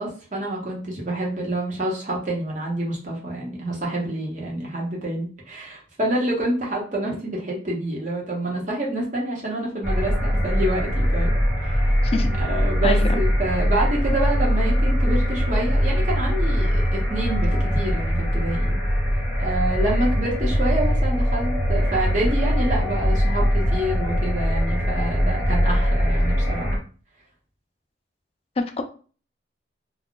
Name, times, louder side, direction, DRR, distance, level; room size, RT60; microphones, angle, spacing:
voice 1, 0.0-11.3 11.6-12.0 12.4-18.8 19.4-26.8, right 1 dB, 40° right, -3 dB, 1.0 m, -27 dB
sound 1, 9.8-26.8, equal, ahead, 1.0 m, -21 dB
voice 2, 12.8-13.2 28.6-28.8, left 3 dB, 30° left, 5 dB, 0.4 m, -26 dB
2.3 x 2.3 x 3.7 m, 0.39 s
head